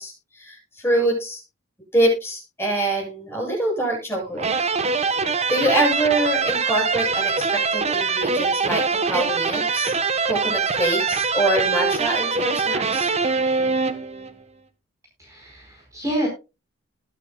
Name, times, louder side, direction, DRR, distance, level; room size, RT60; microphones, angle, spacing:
voice 1, 0.0-1.4 1.9-4.5 5.5-9.9 10.2-13.1, right 1 dB, 10° left, -1 dB, 7.9 m, -24 dB
sound 1, 4.4-14.4, right 4 dB, 35° right, 1.1 m, -23 dB
voice 2, 15.2-16.3, equal, 15° right, -1 dB, 4.6 m, -28 dB
21.0 x 9.0 x 2.3 m, 0.28 s
head